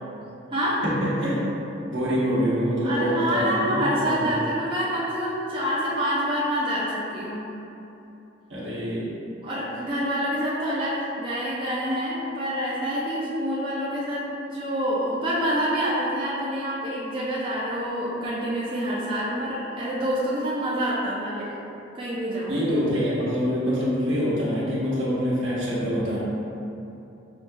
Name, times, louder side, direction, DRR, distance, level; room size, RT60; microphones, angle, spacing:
voice 1, 0.8-1.5 1.9-4.4 8.5-9.1 22.5-26.2, equal, 70° right, -7 dB, 1.0 m, -25 dB
voice 2, 2.8-7.5 9.4-14.3 14.5-21.5 21.9-22.6, equal, 25° right, -8 dB, 0.4 m, -27 dB
5.5 x 2.7 x 2.3 m, 2.9 s
head